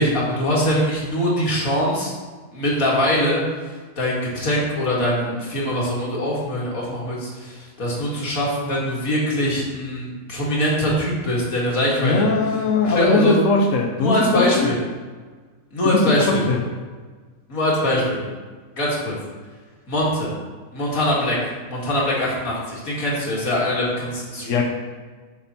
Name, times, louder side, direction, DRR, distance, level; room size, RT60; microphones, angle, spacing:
voice 1, 0.0-2.1 2.5-3.4 4.0-12.3 12.8-13.4 14.0-14.8 15.7-16.4 17.5-18.3 18.8-19.2 19.9-20.3 20.7-24.6, left 1 dB, 85° left, -5 dB, 2.4 m, -22 dB
voice 2, 12.0-14.7 15.8-16.7 24.4-24.6, left 3 dB, 65° left, 2 dB, 1.0 m, -20 dB
7.3 x 6.5 x 4.3 m, 1.4 s
omnidirectional pair, 1.4 m